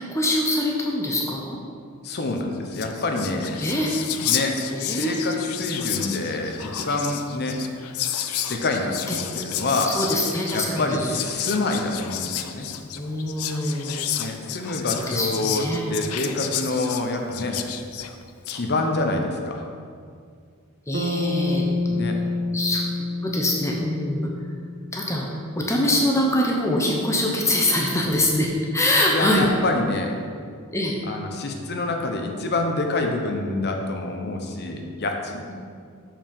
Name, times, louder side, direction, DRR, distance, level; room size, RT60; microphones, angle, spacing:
voice 1, 0.0-1.6 3.6-3.9 4.7-5.4 9.1-9.2 9.9-11.1 12.9-14.2 15.0-15.9 20.9-21.7 22.5-22.8 23.2-24.3 24.9-25.3 25.6-29.5 30.7-30.9 35.5-35.6, left 1 dB, 15° left, -1 dB, 0.8 m, -24 dB
voice 2, 2.0-3.6 4.2-4.6 4.9-7.6 8.5-9.9 10.5-12.7 14.2-17.6 18.5-19.6 21.9-22.2 29.1-30.2 31.1-35.5, left 2 dB, 50° left, 3 dB, 0.9 m, -27 dB
Whispering, 2.4-2.5 2.7-18.6, left 10 dB, 80° left, 0.5 m, -31 dB
Bass guitar, 20.9-25.3, left 3 dB, 40° right, 0.4 m, -28 dB
7.0 x 5.9 x 5.3 m, 2.2 s
head